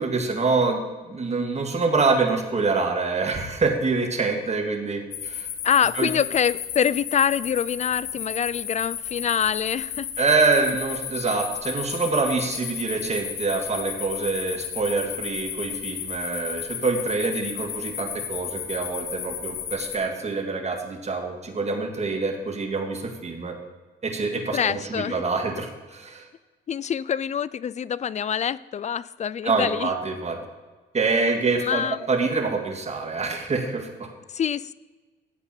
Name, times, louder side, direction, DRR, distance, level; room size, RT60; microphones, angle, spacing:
voice 1, 0.0-5.5 6.0-6.1 10.2-23.6 24.0-26.2 29.4-30.5 30.9-34.1, right 3 dB, 35° right, 4 dB, 2.0 m, -25 dB
sound 1, 5.1-20.0, left 9 dB, 90° left, 1.3 m, -33 dB
voice 2, 5.6-10.3 24.5-25.2 26.7-29.9 31.6-32.0 34.3-34.7, left 8 dB, 35° left, 20 dB, 0.4 m, -25 dB
13.5 x 8.4 x 4.4 m, 1.3 s
cardioid pair, 90°, 20 cm